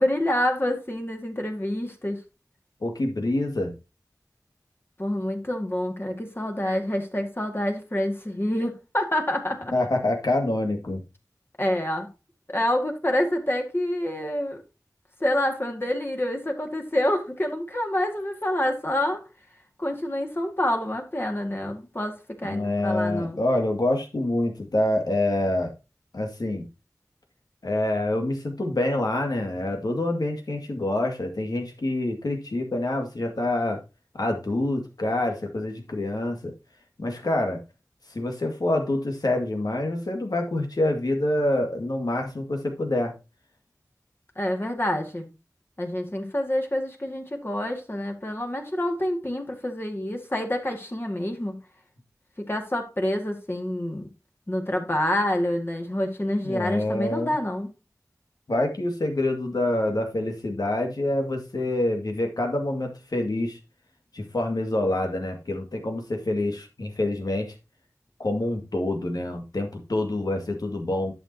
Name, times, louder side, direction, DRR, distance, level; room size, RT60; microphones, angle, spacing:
voice 1, 0.0-2.2 5.0-9.7 11.6-12.1 12.5-14.6 15.2-19.2 19.8-23.4 44.4-45.3 45.8-51.6 52.4-54.1 54.5-57.7, left 1 dB, 35° left, 2.0 m, -27 dB
voice 2, 2.8-3.7 9.7-11.0 22.4-25.7 26.1-26.7 27.6-33.8 34.1-36.5 37.0-37.6 38.1-43.1 56.4-57.3 58.5-63.6 64.1-67.5 68.2-71.1, left 1 dB, 85° left, 2.0 m, -26 dB
11.0 x 6.7 x 2.8 m
wide cardioid pair, 50°, 7 cm